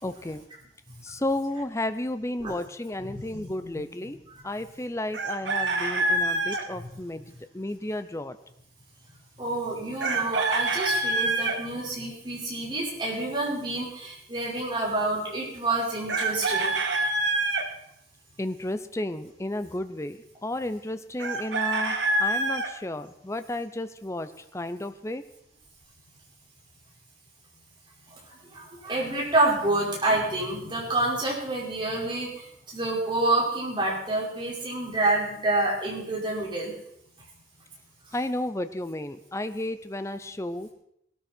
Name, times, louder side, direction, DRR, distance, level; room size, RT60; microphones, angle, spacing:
voice 1, 0.0-0.4 1.0-4.2 4.4-7.2 7.5-8.4 18.4-25.2 38.1-40.7, left 1 dB, 15° left, 11 dB, 0.6 m, -32 dB
voice 2, 3.1-3.5 9.4-16.7 28.5-32.3 32.7-36.7, right 2 dB, 25° right, -5 dB, 5.0 m, -28 dB
Chicken rooster, 5.1-6.6 10.0-11.6 16.1-17.6 21.2-22.7, right 2 dB, 60° right, 1.9 m, -26 dB
19.0 x 13.0 x 4.4 m, 0.76 s
head